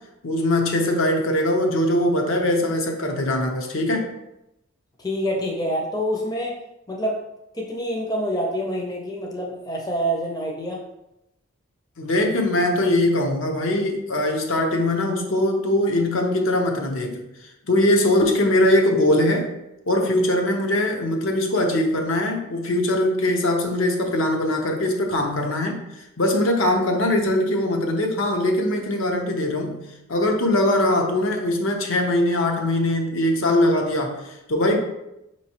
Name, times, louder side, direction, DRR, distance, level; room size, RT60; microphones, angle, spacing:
voice 1, 0.2-4.1 12.0-17.3 17.7-19.5 19.9-29.8 30.1-34.8, left 1 dB, 75° left, 2 dB, 0.7 m, -21 dB
voice 2, 5.0-6.5 6.9-7.2 7.5-10.8, equal, 20° left, -1 dB, 0.5 m, -26 dB
5.2 x 3.0 x 2.8 m, 0.89 s
head